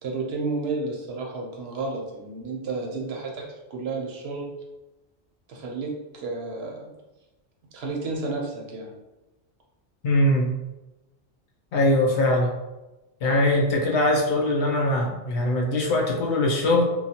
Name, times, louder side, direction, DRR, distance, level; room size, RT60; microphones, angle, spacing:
voice 1, 0.0-4.5 5.5-6.9 7.7-9.0, right 3 dB, 65° right, 0 dB, 0.8 m, -31 dB
voice 2, 10.0-10.5 11.7-12.5 13.2-16.8, left 1 dB, 75° left, -1 dB, 1.0 m, -21 dB
3.1 x 2.2 x 2.7 m, 1.0 s
omnidirectional pair, 1.2 m